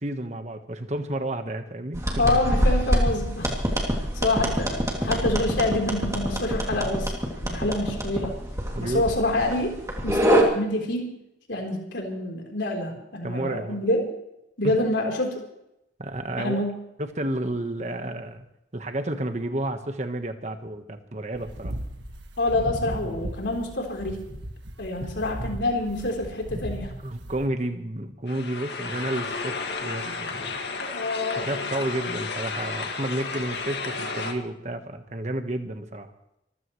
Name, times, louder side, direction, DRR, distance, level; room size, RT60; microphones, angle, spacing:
voice 1, 0.0-2.0 3.8-4.1 8.7-9.0 13.2-13.9 14.6-14.7 16.0-16.6 17.0-18.5 18.7-21.8 25.0-25.1 27.0-30.6 31.3-36.1, right 1 dB, 40° right, 7 dB, 1.3 m, -31 dB
sound 1, 1.9-10.4, equal, 15° right, 2.6 m, -26 dB
voice 2, 2.2-3.6 4.1-8.4 8.8-9.8 10.0-11.2 11.5-14.1 14.6-15.4 16.4-16.7 22.4-24.2 24.8-26.9 30.4-30.5 30.8-31.9, left 1 dB, 90° left, 2 dB, 3.8 m, -27 dB
sound 2, 21.3-27.5, right 1 dB, 80° right, 1.7 m, -36 dB
sound 3, 28.3-34.3, left 4 dB, 70° left, 2.1 m, -32 dB
25.5 x 15.0 x 3.2 m, 0.84 s
head